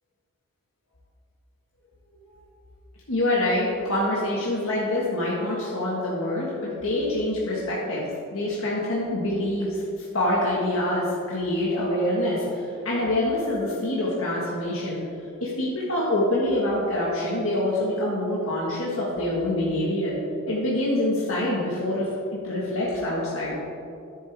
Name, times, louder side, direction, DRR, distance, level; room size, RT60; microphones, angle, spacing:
voice 1, 3.1-15.0 15.4-20.1 20.5-23.6, left 1 dB, 75° left, -6 dB, 1.6 m, -26 dB
10.5 x 8.7 x 3.5 m, 2.5 s
head